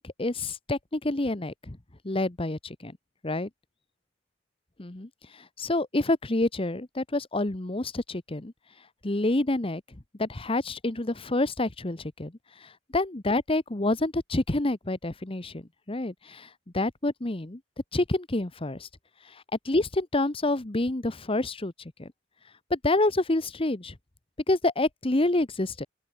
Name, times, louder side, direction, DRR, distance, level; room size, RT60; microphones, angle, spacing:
voice 1, 0.0-1.8 2.0-2.9 3.2-3.5 4.8-8.5 9.0-9.8 10.2-12.3 12.6-16.5 16.7-17.6 17.9-18.9 19.3-21.7 22.0-22.1 22.7-24.0 24.5-25.9, left 2 dB, 30° left, 1.1 m, -28 dB
open air
head